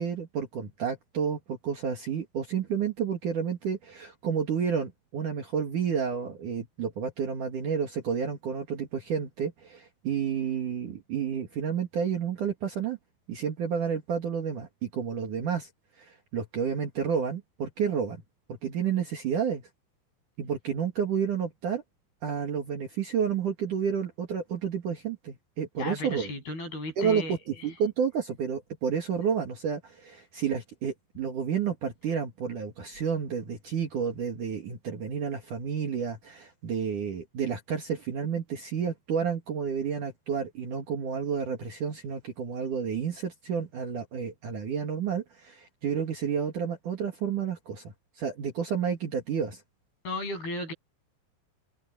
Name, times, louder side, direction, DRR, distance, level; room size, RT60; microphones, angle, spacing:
voice 1, 0.0-13.0 13.3-15.7 16.0-18.2 18.5-19.6 20.4-21.8 22.2-26.3 27.0-47.8 48.2-49.6, right 7 dB, 50° right, 2.9 m, -30 dB
voice 2, 25.8-27.4 50.0-50.7, left 2 dB, 55° left, 9.6 m, -34 dB
open air
omnidirectional pair, 5.4 m